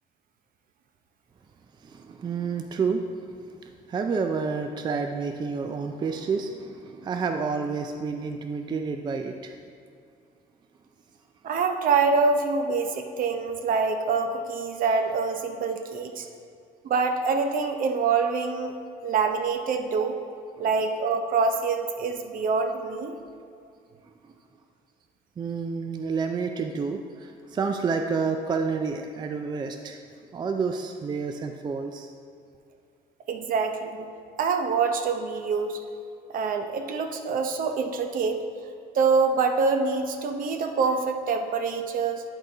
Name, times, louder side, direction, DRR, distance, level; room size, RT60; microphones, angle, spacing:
voice 1, 1.8-3.0 3.6-9.6 20.6-20.7 24.0-24.3 25.4-30.0 30.3-32.1, right 5 dB, 25° right, 5 dB, 0.4 m, -29 dB
voice 2, 11.4-16.3 16.8-18.7 19.0-20.2 20.6-23.2 33.3-34.1 34.4-35.8 36.3-38.4 38.9-42.2, right 4 dB, 55° right, 6 dB, 0.7 m, -25 dB
10.5 x 3.9 x 3.9 m, 2.4 s
cardioid pair, 110°, 17 cm